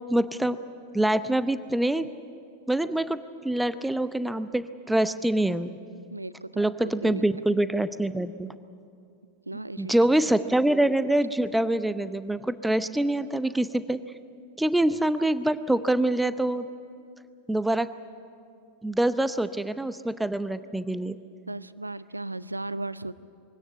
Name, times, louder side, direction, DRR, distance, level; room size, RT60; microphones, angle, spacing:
voice 1, 0.1-0.6 0.9-2.1 2.7-5.7 6.6-8.5 9.8-14.0 14.6-16.7 17.5-17.9 18.8-21.2, right 1 dB, 5° right, 13 dB, 0.7 m, -25 dB
voice 2, 6.1-7.4 9.5-9.9 21.5-23.2, right 2 dB, 85° right, 17 dB, 0.6 m, -36 dB
22.5 x 17.0 x 10.0 m, 2.4 s
figure-of-eight pair, 90°, 0 cm